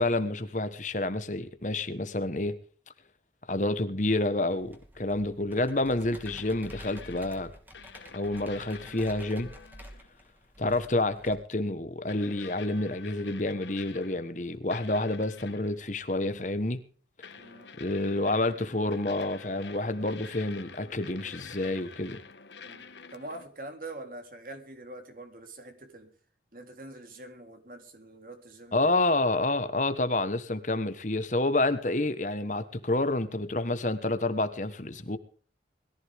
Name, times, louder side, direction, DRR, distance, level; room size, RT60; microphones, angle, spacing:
voice 1, 0.0-2.6 3.5-7.5 8.1-9.5 10.6-16.8 17.8-22.2 28.7-35.2, left 2 dB, 45° left, 1.4 m, -29 dB
Computer keyboard, 4.6-11.3, equal, 10° right, 2.8 m, -49 dB
sound 1, 6.3-7.4 7.7-10.1 10.6-10.8 12.1-14.4 14.7-15.8 17.2-23.5, left 5 dB, 85° left, 1.6 m, -48 dB
voice 2, 17.4-17.7 22.6-26.1 26.5-28.9, right 2 dB, 50° right, 3.6 m, -44 dB
21.5 x 14.5 x 3.6 m
head